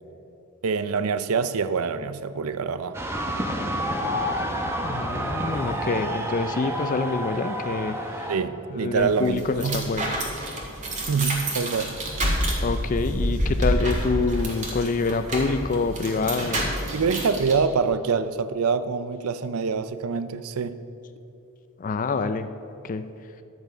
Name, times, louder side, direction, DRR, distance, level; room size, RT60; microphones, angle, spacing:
voice 1, 0.6-3.0 8.3-9.9 11.1-11.9 16.9-20.8, right 5 dB, 70° right, 0.5 m, -25 dB
sound 1, 2.9-8.4, equal, 10° right, 0.8 m, -29 dB
voice 2, 4.8-8.3 8.8-10.1 12.6-16.7 21.8-22.5 22.8-23.0, left 4 dB, 35° left, 0.4 m, -26 dB
sound 2, 9.0-17.6, right 1 dB, 35° right, 1.8 m, -28 dB
11.0 x 8.1 x 5.0 m
head